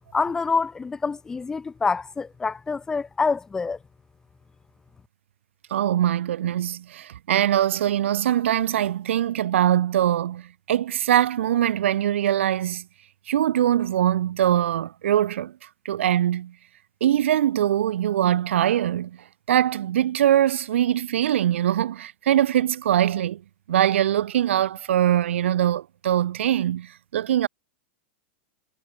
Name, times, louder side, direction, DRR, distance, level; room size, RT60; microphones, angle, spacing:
voice 1, 0.1-3.8, left 4 dB, 10° left, 0.9 m, -26 dB
voice 2, 5.7-12.8 13.3-15.5 15.8-16.5 17.0-19.2 19.5-23.4 23.7-27.5, right 11 dB, 85° right, 3.0 m, -22 dB
supercardioid pair, 165°, 6 cm